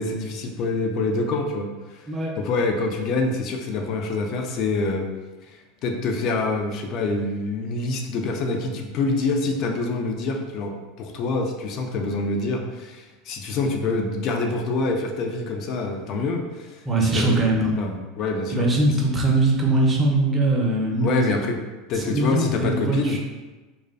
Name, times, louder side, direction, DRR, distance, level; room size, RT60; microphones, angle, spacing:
voice 1, 0.0-2.0 2.4-5.1 5.5-17.4 17.8-18.7 21.0-21.6 21.9-23.2, left 3 dB, 50° left, 3 dB, 0.4 m, -26 dB
voice 2, 2.1-2.4 16.9-17.7 18.5-21.2 22.0-23.2, right 2 dB, 20° right, -1 dB, 0.5 m, -21 dB
2.5 x 2.1 x 2.4 m, 1.2 s
hypercardioid pair, 90°, 0 cm